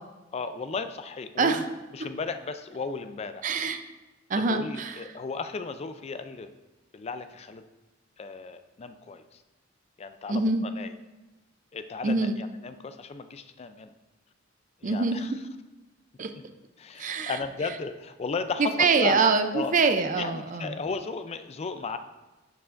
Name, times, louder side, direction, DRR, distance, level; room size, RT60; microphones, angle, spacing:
voice 1, 0.3-1.6 1.9-3.4 4.4-6.5 6.9-7.6 8.2-9.4 10.0-10.9 11.7-13.9 14.8-15.3 16.8-19.2 19.5-19.7 20.2-22.0, left 4 dB, 30° left, 10 dB, 0.3 m, -35 dB
voice 2, 3.4-3.8 4.3-5.0 10.3-10.7 12.0-12.4 14.8-15.2 16.2-16.3 17.0-17.3 18.6-20.8, right 4 dB, 40° right, 8 dB, 0.5 m, -24 dB
11.0 x 4.7 x 2.5 m, 1.1 s
head